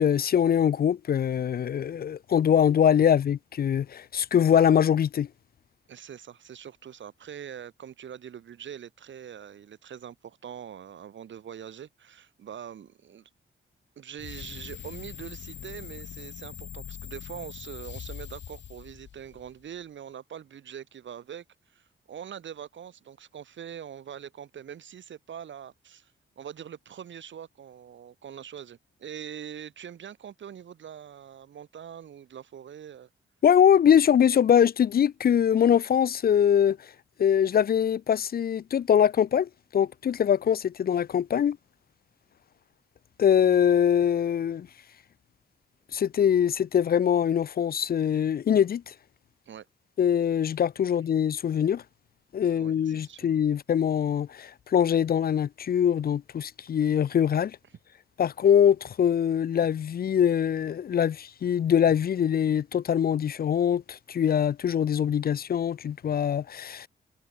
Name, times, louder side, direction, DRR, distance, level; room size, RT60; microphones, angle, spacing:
voice 1, 0.0-5.3 33.4-36.8 37.2-41.6 43.2-44.7 45.9-48.9 50.0-51.8 52.3-57.6 58.2-66.9, left 8 dB, 50° left, 0.6 m, -23 dB
voice 2, 5.9-13.3 14.0-21.4 21.7-26.1 26.4-33.1 49.5-49.6 52.5-53.3, right 9 dB, 70° right, 5.0 m, -43 dB
sound 1, 14.2-19.6, left 9 dB, 65° left, 3.0 m, -42 dB
wide cardioid pair, 150°, 20 cm